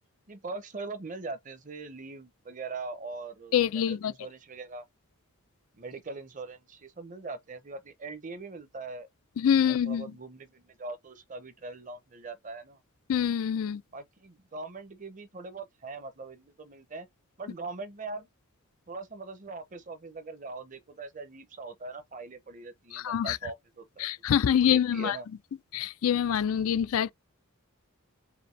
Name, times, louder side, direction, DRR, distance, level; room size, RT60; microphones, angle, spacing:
voice 1, 0.3-4.8 5.8-9.1 9.6-12.8 13.9-17.1 17.4-18.3 18.9-24.1 24.6-25.3, right 3 dB, 35° right, 0.7 m, -41 dB
voice 2, 3.5-4.1 9.4-10.1 13.1-13.8 22.9-23.4 24.0-25.2 25.7-27.1, left 9 dB, 75° left, 0.3 m, -25 dB
5.0 x 2.6 x 3.2 m
head